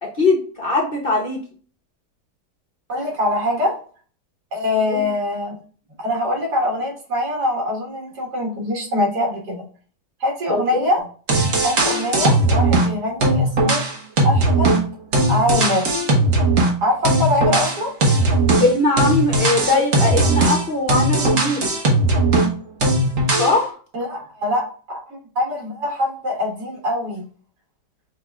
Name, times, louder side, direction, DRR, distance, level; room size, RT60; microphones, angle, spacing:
voice 1, 0.0-1.4 4.9-5.1 10.5-10.8 18.6-21.6 23.4-23.7, left 2 dB, 45° left, 0 dB, 0.8 m, -20 dB
voice 2, 2.9-3.8 4.5-5.6 6.0-9.6 10.2-11.0 11.6-13.8 14.2-14.8 15.3-15.9 16.8-18.0 23.9-27.2, left 1 dB, 70° right, -1 dB, 2.2 m, -23 dB
sound 1, 11.0-11.1 11.3-12.9 13.2-16.8 17.0-22.5 22.8-23.6, right 2 dB, 55° right, 1.4 m, -18 dB
6.0 x 2.4 x 3.5 m, 0.41 s
omnidirectional pair, 1.8 m